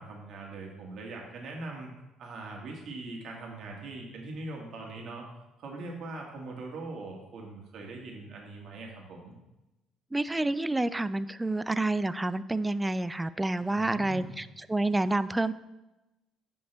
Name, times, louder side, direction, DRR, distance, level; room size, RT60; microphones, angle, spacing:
voice 1, 0.0-1.9 2.2-5.3 5.6-9.3 13.6-14.4, right 2 dB, 60° right, 0 dB, 1.9 m, -41 dB
voice 2, 10.1-15.5, right 2 dB, 10° right, 15 dB, 0.3 m, -29 dB
10.0 x 5.4 x 3.4 m, 0.99 s
cardioid pair, 100°, 0 cm